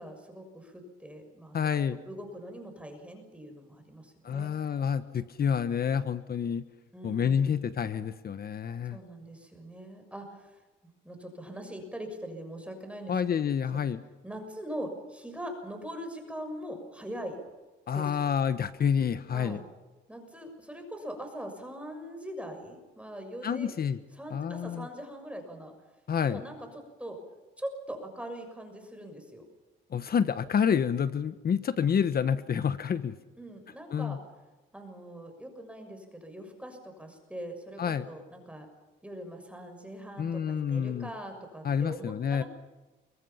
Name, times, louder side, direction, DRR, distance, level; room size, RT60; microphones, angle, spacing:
voice 1, 0.0-1.6 2.0-4.5 6.9-7.6 8.9-10.6 11.0-13.5 13.7-13.8 14.2-17.4 17.9-18.1 19.3-19.6 20.1-23.7 24.2-25.7 26.2-27.2 27.6-29.5 33.4-34.2 34.7-38.7 39.0-42.5, equal, 5° right, 5 dB, 6.5 m, -42 dB
voice 2, 1.5-2.0 4.2-6.6 7.0-9.0 13.1-14.0 17.9-19.6 23.4-24.0 24.3-24.9 26.1-26.4 29.9-33.1 33.9-34.2 37.8-38.1 40.2-41.1 41.6-42.4, left 7 dB, 50° left, 12 dB, 1.3 m, -28 dB
29.0 x 23.5 x 5.8 m, 1.2 s
cardioid pair, 90°, 20 cm